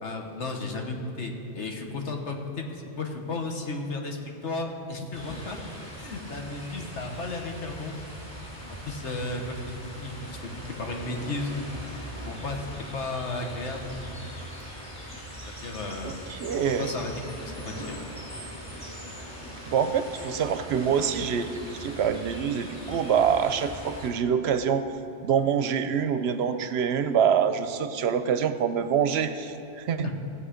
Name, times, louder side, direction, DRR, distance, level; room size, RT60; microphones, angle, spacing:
voice 1, 0.0-5.6 6.0-7.9 8.8-9.6 9.9-11.5 12.2-12.6 12.9-13.9 15.5-16.2 16.8-17.1 17.4-17.9 30.0-30.1, left 3 dB, 75° left, 2 dB, 1.5 m, -34 dB
sound 1, 5.1-24.1, equal, 5° left, 3.2 m, -40 dB
voice 2, 16.0-16.9 19.7-24.9 25.2-30.1, right 7 dB, 70° right, 10 dB, 0.8 m, -25 dB
17.0 x 7.3 x 5.0 m, 2.7 s
omnidirectional pair, 1.2 m